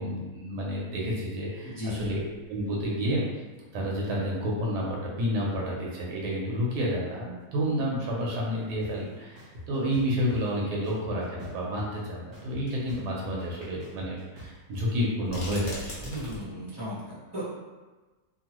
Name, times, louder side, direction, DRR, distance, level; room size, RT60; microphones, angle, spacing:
voice 1, 0.0-2.2 2.5-3.2 3.7-16.1, equal, 85° right, -3 dB, 1.3 m, -30 dB
sound 1, 1.5-1.6 1.9-2.9 3.5-3.6 5.4-5.5 6.8-6.9 7.1-7.2 8.2-8.3 8.6-8.7 10.1-10.2 11.7-11.8 12.7-13.0 13.4-13.7 14.0-14.1 15.2-16.4, equal, 50° left, 0.9 m, -42 dB
voice 2, 1.6-2.1 16.0-17.4, left 1 dB, 20° right, -9 dB, 0.8 m, -36 dB
sound 2, 8.8-8.9 9.4-10.4 10.8-12.0 12.3-14.8, left 1 dB, 45° right, 1.0 m, -44 dB
2.9 x 2.5 x 2.9 m, 1.2 s
omnidirectional pair, 1.8 m